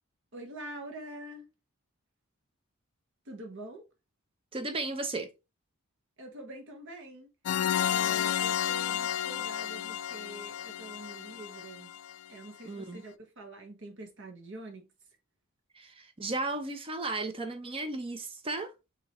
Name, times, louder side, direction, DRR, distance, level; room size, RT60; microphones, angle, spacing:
voice 1, 0.3-1.5 3.2-3.9 6.2-7.3 7.8-11.9 12.3-14.9, right 1 dB, 60° right, 1.3 m, -45 dB
voice 2, 4.5-5.3 12.6-13.0 15.7-18.7, right 2 dB, 25° right, 0.6 m, -35 dB
sound 1, 7.5-12.1, left 10 dB, 75° left, 0.3 m, -31 dB
5.3 x 2.9 x 3.0 m
head